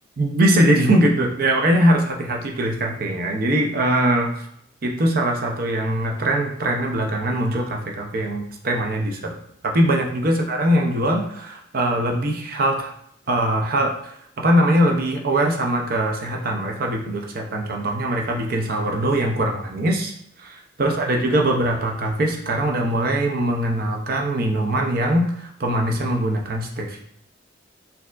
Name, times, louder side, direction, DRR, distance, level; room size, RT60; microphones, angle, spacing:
voice 1, 0.2-4.3 4.8-9.3 9.6-12.9 13.3-13.9 14.4-20.1 20.4-27.0, right 1 dB, 50° right, 1 dB, 0.5 m, -21 dB
4.4 x 2.7 x 2.4 m, 0.72 s
head